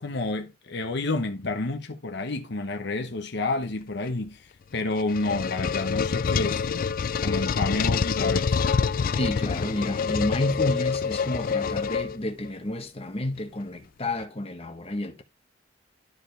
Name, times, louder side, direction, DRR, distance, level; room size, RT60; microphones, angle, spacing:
voice 1, 0.0-6.6 7.2-8.6, left 2 dB, 65° left, 1.0 m, -29 dB
sound 1, 4.7-12.5, left 6 dB, 50° left, 0.4 m, -26 dB
voice 2, 9.1-15.2, left 1 dB, 30° left, 1.1 m, -30 dB
12.0 x 4.7 x 3.3 m
head